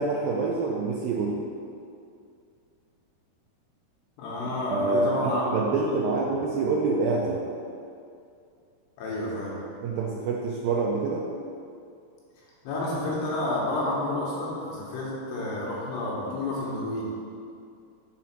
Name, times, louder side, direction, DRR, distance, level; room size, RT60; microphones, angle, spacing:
voice 1, 0.0-1.4 4.7-7.5 9.8-11.3, right 3 dB, 80° right, -2 dB, 2.1 m, -26 dB
voice 2, 4.2-5.6 6.0-6.1 9.0-9.6 12.6-17.1, left 1 dB, 85° left, -5 dB, 3.6 m, -30 dB
7.2 x 4.2 x 5.8 m, 2.4 s
omnidirectional pair, 4.7 m